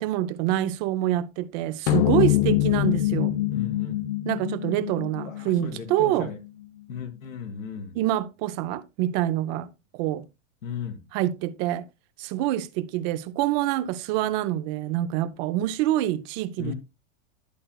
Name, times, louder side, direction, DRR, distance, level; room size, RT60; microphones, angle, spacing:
voice 1, 0.0-3.4 4.3-6.3 7.9-10.2 11.1-11.8 12.2-16.7, right 14 dB, 35° right, 0.5 m, -26 dB
sound 1, 1.9-6.5, left 15 dB, 45° left, 0.4 m, -25 dB
voice 2, 3.5-4.1 5.2-6.4 6.9-8.0 10.6-11.1 16.6-16.7, left 6 dB, 85° left, 1.9 m, -36 dB
11.0 x 7.5 x 2.2 m
hypercardioid pair, 130°, 39 cm